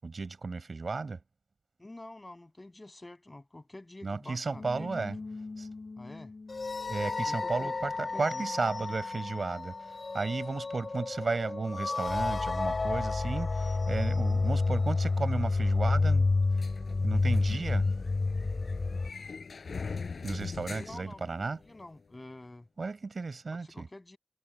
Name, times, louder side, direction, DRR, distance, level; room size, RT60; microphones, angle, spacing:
voice 1, 0.0-1.2 4.0-5.2 5.6-5.7 6.9-9.7 10.1-16.3 17.0-17.9 20.2-21.6 22.8-23.9, right 4 dB, 65° right, 5.9 m, -34 dB
voice 2, 1.8-4.9 6.0-6.3 7.3-8.5 20.7-22.7 23.7-24.2, left 2 dB, 25° left, 8.0 m, -48 dB
sound 1, 4.5-19.1, left 3 dB, 55° left, 3.4 m, -30 dB
sound 2, 16.6-21.8, left 5 dB, 90° left, 7.6 m, -42 dB
wide cardioid pair, 100°, 0 cm